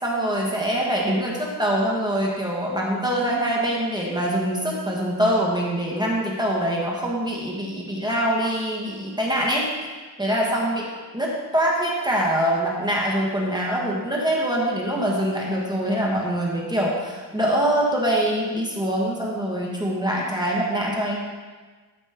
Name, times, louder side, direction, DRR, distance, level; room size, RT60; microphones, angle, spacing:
voice 1, 0.0-9.7 10.2-21.2, right 1 dB, 10° right, -3 dB, 1.5 m, -24 dB
12.5 x 5.2 x 3.6 m, 1.4 s
wide cardioid pair, 100°, 41 cm